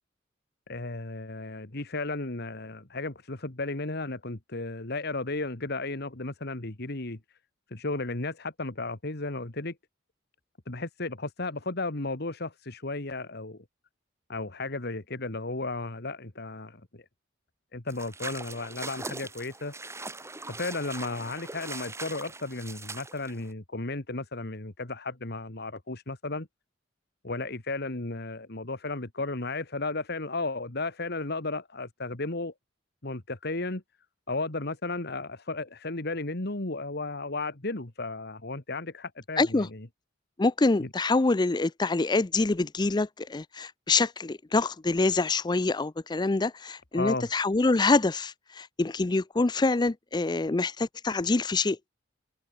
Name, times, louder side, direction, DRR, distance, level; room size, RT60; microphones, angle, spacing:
voice 1, 0.7-7.2 7.7-9.8 10.7-13.6 14.3-17.0 17.7-19.7 20.5-26.5 27.2-32.5 33.0-33.8 34.3-39.9 40.8-40.9 46.9-47.3, left 2 dB, 55° left, 2.1 m, -34 dB
sound 1, 17.9-23.5, right 3 dB, 15° right, 5.8 m, -41 dB
voice 2, 39.4-39.7 40.4-51.8, left 3 dB, 20° left, 0.5 m, -26 dB
head